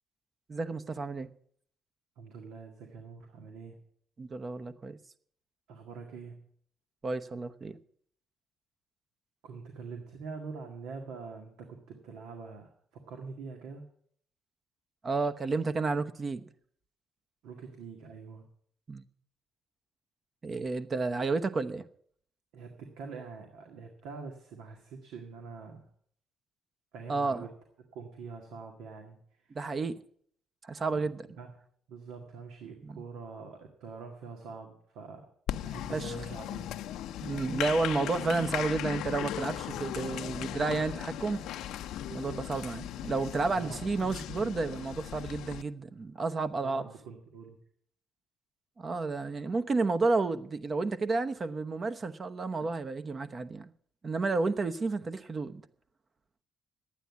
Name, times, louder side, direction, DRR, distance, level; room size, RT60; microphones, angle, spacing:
voice 1, 0.5-1.3 4.2-5.0 7.0-7.8 15.0-16.5 18.9-19.0 20.4-21.9 27.1-27.5 29.5-30.0 30.6-31.3 32.8-33.0 35.9-36.2 37.2-41.5 42.1-46.8 48.8-53.7 54.0-55.6, right 3 dB, 40° right, 1.0 m, -31 dB
voice 2, 2.2-3.8 5.7-6.5 9.4-13.8 17.4-18.4 22.5-25.9 26.9-27.5 27.9-29.2 29.4-29.6 30.9-31.0 31.4-31.5 31.9-35.3 35.6-36.7 43.5-43.8 46.6-47.6, right 5 dB, 85° right, 1.9 m, -44 dB
Applause, 35.5-45.6, left 12 dB, 80° left, 0.6 m, -37 dB
11.5 x 9.1 x 8.2 m
cardioid pair, 80°, 0 cm